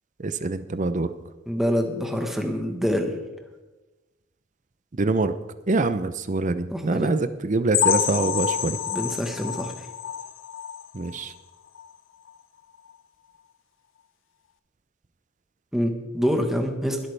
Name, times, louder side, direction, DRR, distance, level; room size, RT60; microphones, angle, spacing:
voice 1, 0.2-1.1 5.0-5.3 5.7-8.8 10.9-11.3, right 3 dB, 40° right, 12 dB, 0.6 m, -24 dB
voice 2, 1.5-3.1 6.7-7.2 8.9-9.9 15.7-17.0, equal, ahead, 3 dB, 1.3 m, -26 dB
sound 1, 7.7-11.4 11.7-11.9 12.3-12.4 12.9-13.0, left 10 dB, 75° left, 0.7 m, -27 dB
21.5 x 8.3 x 3.4 m, 1.1 s
head